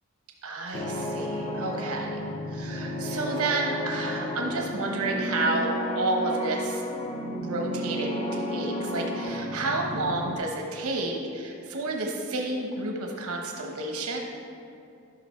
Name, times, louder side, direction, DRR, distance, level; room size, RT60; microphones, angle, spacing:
voice 1, 0.4-2.2 2.5-5.7 5.9-6.8 7.4-14.2, right 2 dB, 85° right, 1 dB, 1.0 m, -30 dB
sound 1, 0.7-10.3, left 1 dB, 30° left, 0.5 m, -32 dB
11.5 x 6.0 x 4.4 m, 2.5 s
head